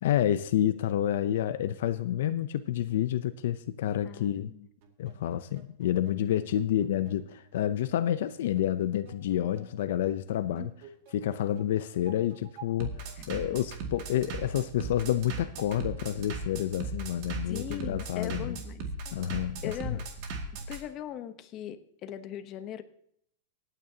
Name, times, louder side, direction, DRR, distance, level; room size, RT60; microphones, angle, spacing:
voice 1, 0.0-4.5 5.0-10.7 11.1-18.6 19.1-20.0, left 11 dB, 70° left, 0.5 m, -29 dB
voice 2, 4.0-4.7 13.2-13.4 17.5-18.8 19.6-20.1 20.7-22.8, left 10 dB, 30° left, 0.9 m, -40 dB
Bass drum, 4.8-20.8, right 4 dB, 45° right, 2.1 m, -39 dB
25.0 x 9.2 x 2.8 m
supercardioid pair, 160°, 0 cm